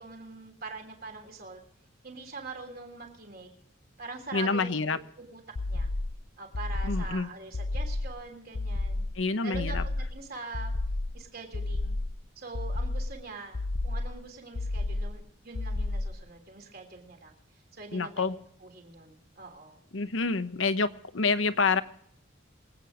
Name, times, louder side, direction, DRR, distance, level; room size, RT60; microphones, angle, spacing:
voice 1, 0.0-1.6 2.0-3.5 4.0-5.4 5.7-5.9 6.4-9.1 9.4-10.7 11.1-12.0 12.3-17.3 17.7-19.8, right 4 dB, 50° right, 3 dB, 3.4 m, -43 dB
voice 2, 4.3-5.0 6.8-7.3 9.2-9.8 17.9-18.3 19.9-21.8, left 4 dB, 70° left, 11 dB, 1.0 m, -27 dB
sound 1, 5.6-6.2 6.5-7.2 7.5-8.2 8.5-9.2 9.5-10.2 10.5-11.2 11.5-12.2 12.5-13.2 13.5-14.2 14.5-15.2 15.5-16.2, left 2 dB, 50° left, 0.7 m, -31 dB
24.5 x 9.1 x 5.1 m, 0.68 s
head